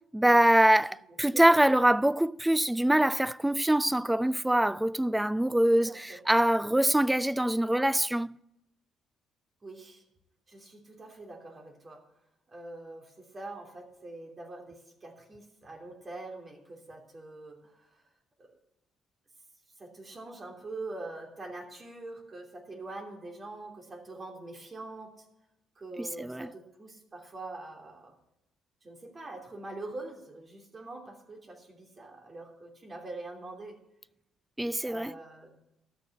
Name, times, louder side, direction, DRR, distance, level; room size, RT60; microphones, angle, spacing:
voice 1, 0.1-8.4 26.0-26.5 34.6-35.1, right 1 dB, 10° right, 0.3 m, -24 dB
voice 2, 5.8-6.2 9.6-10.0 10.5-12.0 12.5-18.0 18.4-18.5 19.8-25.3 25.7-28.1 28.8-33.7 34.8-35.6, right 2 dB, 35° right, 3.1 m, -44 dB
13.0 x 6.2 x 8.4 m
supercardioid pair, 70°, 0 cm